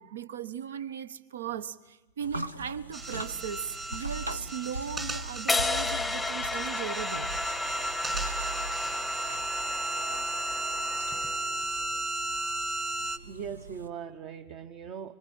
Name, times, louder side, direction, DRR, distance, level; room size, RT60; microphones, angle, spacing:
voice 1, 0.0-7.3 9.3-9.4, right 8 dB, 65° right, 17 dB, 1.0 m, -38 dB
sound 1, 2.2-13.9, right 1 dB, 80° right, 1.2 m, -41 dB
sound 2, 2.9-13.2, right 2 dB, 15° right, 1.4 m, -34 dB
sound 3, 5.5-11.6, left 3 dB, 5° left, 0.9 m, -33 dB
voice 2, 13.0-15.2, right 7 dB, 40° right, 9 dB, 1.1 m, -40 dB
26.0 x 25.5 x 8.8 m, 1.1 s
figure-of-eight pair, 90°, 0 cm